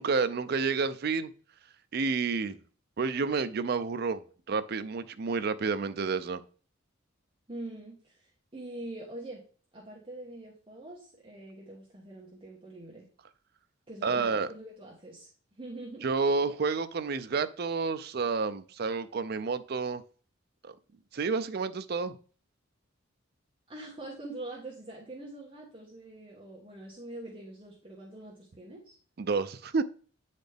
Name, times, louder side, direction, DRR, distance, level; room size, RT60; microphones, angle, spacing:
voice 1, 0.0-1.3 1.9-2.6 3.0-6.4 14.0-14.5 16.0-20.0 20.6-20.7 21.1-22.1 29.2-29.8, right 4 dB, 50° right, 0.4 m, -30 dB
voice 2, 7.5-9.4 9.7-13.1 13.9-15.3 15.6-16.1 23.7-28.9, right 1 dB, 25° right, 1.3 m, -44 dB
9.1 x 4.1 x 3.4 m
head